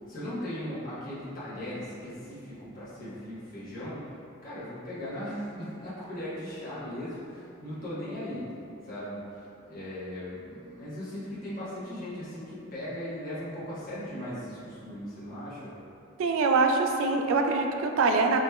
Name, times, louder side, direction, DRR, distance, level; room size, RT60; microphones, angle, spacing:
voice 1, 0.1-4.0 4.4-8.5 8.8-9.2 9.7-15.7, left 1 dB, 40° left, -10 dB, 1.1 m, -38 dB
voice 2, 16.2-18.4, right 3 dB, 70° right, 4 dB, 0.3 m, -24 dB
4.8 x 3.0 x 2.3 m, 2.7 s
head